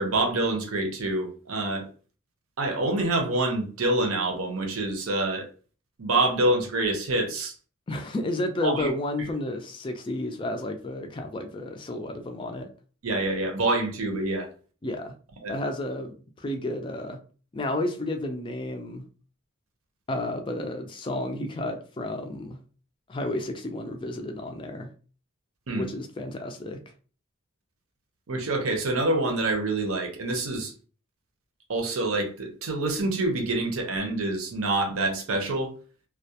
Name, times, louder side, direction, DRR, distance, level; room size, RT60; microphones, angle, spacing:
voice 1, 0.0-1.9 2.6-5.5 6.0-7.5 8.6-8.9 13.0-14.5 15.4-15.6 25.7-25.8 28.3-30.7 31.7-35.7, right 2 dB, 80° right, 0.7 m, -26 dB
voice 2, 7.9-12.7 14.8-15.1 15.5-17.2 17.5-19.0 20.1-22.6 23.1-24.9 25.8-26.8, left 1 dB, 25° left, 0.3 m, -31 dB
2.3 x 2.1 x 2.7 m
head